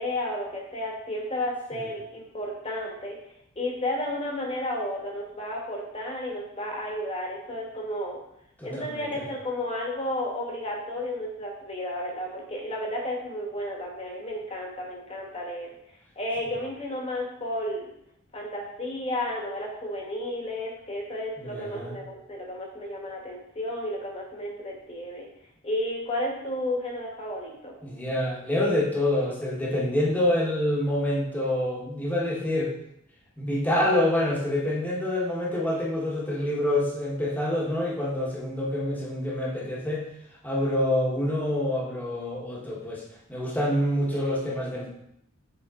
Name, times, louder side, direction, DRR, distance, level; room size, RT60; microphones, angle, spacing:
voice 1, 0.0-3.2 3.5-8.2 8.6-17.9 18.3-25.3 25.6-27.7, left 1 dB, 30° left, -1 dB, 1.3 m, -32 dB
voice 2, 8.6-9.2 21.4-22.0 27.8-32.7 33.4-40.1 40.4-43.0 43.3-44.9, left 1 dB, 10° left, -4 dB, 1.2 m, -27 dB
6.7 x 3.8 x 3.7 m, 0.76 s
head